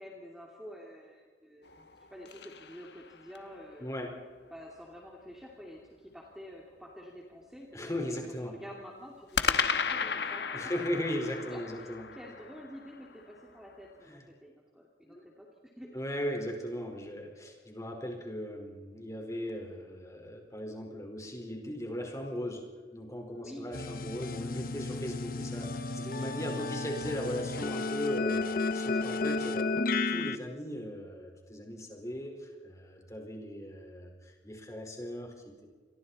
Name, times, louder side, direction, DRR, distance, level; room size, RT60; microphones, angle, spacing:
voice 1, 0.0-3.9 4.5-8.2 8.5-10.5 11.5-16.0 23.4-23.7 26.0-26.4 28.9-29.5, equal, 5° right, -2 dB, 2.8 m, -48 dB
sound 1, 1.6-3.5 9.3-13.6, left 6 dB, 70° left, 1.4 m, -34 dB
voice 2, 3.8-4.2 7.7-8.6 10.5-12.1 14.1-14.2 15.1-15.3 15.9-22.6 22.9-29.7 30.1-35.7, equal, 20° left, 2 dB, 4.7 m, -38 dB
sound 2, 23.7-30.4, left 3 dB, 50° left, 0.9 m, -33 dB
29.0 x 23.5 x 4.3 m, 1.5 s
head